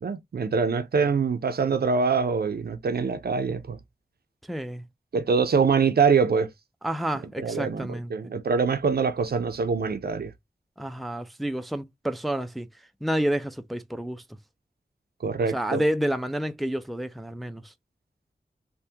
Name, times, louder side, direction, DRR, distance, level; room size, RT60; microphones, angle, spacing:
voice 1, 0.0-3.8 5.1-6.5 7.4-10.3 15.2-15.8, right 5 dB, 75° right, 0.5 m, -24 dB
voice 2, 4.5-4.8 6.8-8.1 10.8-12.7 13.0-14.2 15.4-17.7, right 1 dB, ahead, 0.4 m, -29 dB
3.4 x 2.2 x 2.7 m
wide cardioid pair, 65°, 16 cm